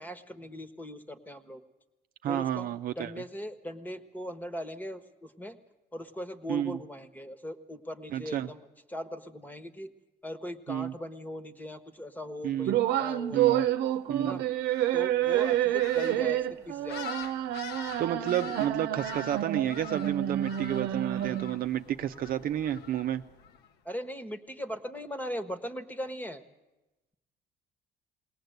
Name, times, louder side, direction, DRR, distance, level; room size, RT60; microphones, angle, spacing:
voice 1, 0.0-1.6 2.3-5.6 5.9-9.9 10.2-13.7 14.2-14.4 14.9-17.1 23.8-26.4, equal, 10° left, 11 dB, 1.3 m, -39 dB
voice 2, 2.2-3.1 6.5-6.8 8.1-8.5 10.7-10.9 12.4-12.8 13.3-13.6 14.1-14.4 18.0-23.2, right 11 dB, 60° right, 8 dB, 0.8 m, -31 dB
sound 1, 12.7-21.6, right 12 dB, 85° right, 0.9 m, -29 dB
sound 2, 14.6-23.7, left 8 dB, 75° left, 1.1 m, -46 dB
21.5 x 18.5 x 8.1 m, 1.0 s
cardioid pair, 110°, 17 cm